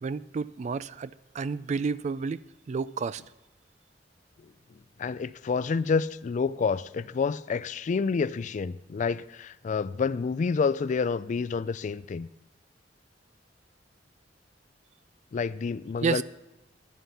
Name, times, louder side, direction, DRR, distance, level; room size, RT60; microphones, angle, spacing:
voice 1, 0.0-2.4 2.7-3.2 16.0-16.2, right 5 dB, 40° right, 0.3 m, -30 dB
voice 2, 5.0-12.3 15.3-16.2, left 5 dB, 45° left, 0.3 m, -28 dB
11.5 x 9.1 x 5.5 m
head